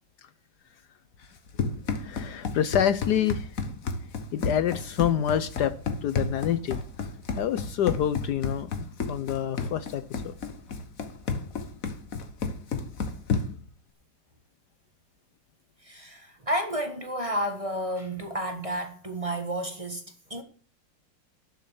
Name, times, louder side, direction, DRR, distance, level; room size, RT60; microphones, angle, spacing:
Run, 1.2-13.7, left 4 dB, 50° left, 1.6 m, -32 dB
voice 1, 2.0-3.6 4.3-5.7 6.0-7.1 7.4-8.7 9.1-10.4, left 10 dB, 70° left, 1.1 m, -27 dB
voice 2, 15.8-20.0 20.3-20.4, equal, 20° right, 1.4 m, -31 dB
11.5 x 6.3 x 7.0 m
omnidirectional pair, 2.0 m